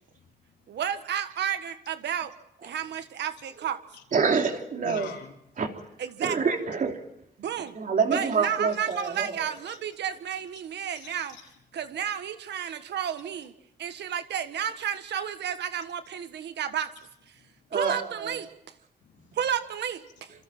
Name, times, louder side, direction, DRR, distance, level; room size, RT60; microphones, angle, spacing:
voice 1, 0.1-0.8 3.9-4.0 4.8-5.4 8.4-8.5 8.9-9.1 9.7-9.8 11.0-11.5 17.3-17.8 19.0-19.4, left 7 dB, 85° left, 4.1 m, -46 dB
voice 2, 0.7-2.3 2.6-3.8 6.0-6.4 7.4-7.8 8.1-11.4 11.7-13.5 13.8-16.9 17.7-18.5 19.3-20.3, right 9 dB, 80° right, 1.6 m, -31 dB
voice 3, 4.1-5.1 5.6-5.7 6.2-7.0 7.8-9.5 17.7-17.9 18.2-18.3, right 5 dB, 50° right, 3.4 m, -26 dB
27.5 x 27.0 x 4.4 m
cardioid pair, 125°, 18 cm